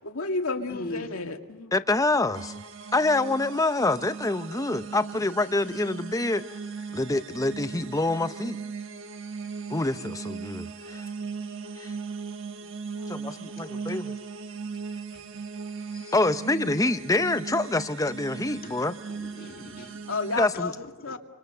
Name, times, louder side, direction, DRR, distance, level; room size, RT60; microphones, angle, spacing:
voice 1, 0.1-1.7 12.9-13.2 20.1-20.8 21.0-21.2, left 3 dB, 80° left, 2.0 m, -31 dB
voice 2, 0.7-1.3 13.3-13.6 15.1-15.2 15.9-16.1 17.2-17.3 18.4-21.2, left 1 dB, 45° left, 2.1 m, -42 dB
voice 3, 1.7-2.5 2.9-6.4 6.9-8.6 9.7-11.1 11.8-11.9 13.1-14.1 16.1-18.9 20.4-20.7, left 2 dB, 15° left, 0.8 m, -26 dB
sound 1, 2.3-20.5, right 5 dB, 65° right, 1.4 m, -38 dB
27.5 x 26.0 x 6.8 m
head